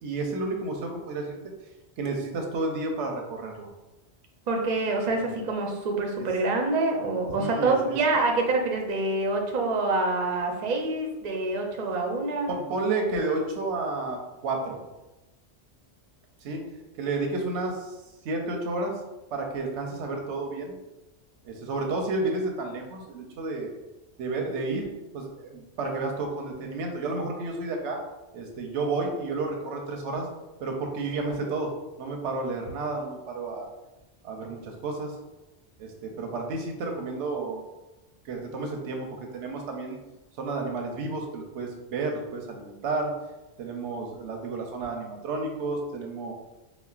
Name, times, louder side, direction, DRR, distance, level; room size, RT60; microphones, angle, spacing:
voice 1, 0.0-1.5 2.0-3.7 7.4-8.0 12.5-14.8 16.4-16.6 17.0-17.9 18.2-19.0 19.3-20.7 21.4-23.7 24.2-24.9 25.1-28.0 28.3-30.3 30.6-31.7 32.0-33.7 34.2-35.2 35.8-37.7 38.2-40.0 40.4-43.1 43.6-46.3, right 3 dB, 90° right, 2 dB, 0.9 m, -31 dB
voice 2, 4.5-12.6, right 3 dB, 55° right, 1 dB, 0.5 m, -26 dB
4.1 x 2.1 x 2.3 m, 1.0 s
omnidirectional pair, 1.2 m